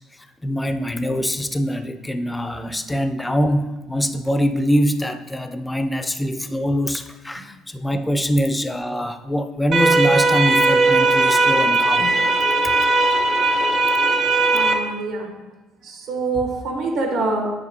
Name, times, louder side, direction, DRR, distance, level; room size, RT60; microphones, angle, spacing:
voice 1, 0.4-12.2 12.6-12.7, equal, 10° left, 8 dB, 0.5 m, -23 dB
sound 1, 9.7-14.7, right 2 dB, 45° right, 1.0 m, -18 dB
voice 2, 14.5-15.3 15.8-17.5, right 3 dB, 75° right, 0 dB, 1.5 m, -25 dB
9.3 x 3.5 x 2.9 m, 1.1 s
hypercardioid pair, 65°, 0 cm